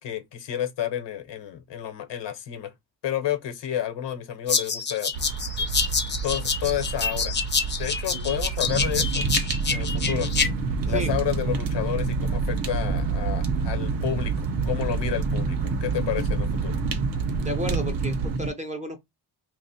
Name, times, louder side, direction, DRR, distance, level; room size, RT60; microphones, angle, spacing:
voice 1, 0.0-2.7 3.0-5.1 6.2-7.4 7.8-9.3 9.7-10.3 10.9-16.8, left 11 dB, 80° left, 0.9 m, -30 dB
sound 1, 4.5-10.5, left 5 dB, 25° left, 0.5 m, -27 dB
sound 2, 5.1-18.4, right 5 dB, 90° right, 0.6 m, -30 dB
Fire, 8.6-18.5, right 3 dB, 55° right, 0.7 m, -29 dB
voice 2, 17.4-19.0, right 1 dB, 15° right, 0.5 m, -32 dB
2.9 x 2.1 x 4.1 m
wide cardioid pair, 150°, 42 cm